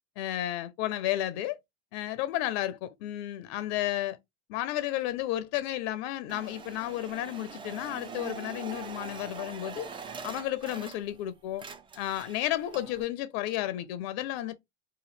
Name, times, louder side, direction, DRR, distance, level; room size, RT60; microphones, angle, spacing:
voice 1, 0.2-1.6 1.9-4.2 4.5-9.9 10.2-11.6 12.0-14.5, left 14 dB, 60° left, 0.5 m, -32 dB
sound 1, 6.3-11.2 11.5-13.0, right 5 dB, 15° right, 0.3 m, -43 dB
2.9 x 2.3 x 3.1 m
hypercardioid pair, 85°, 36 cm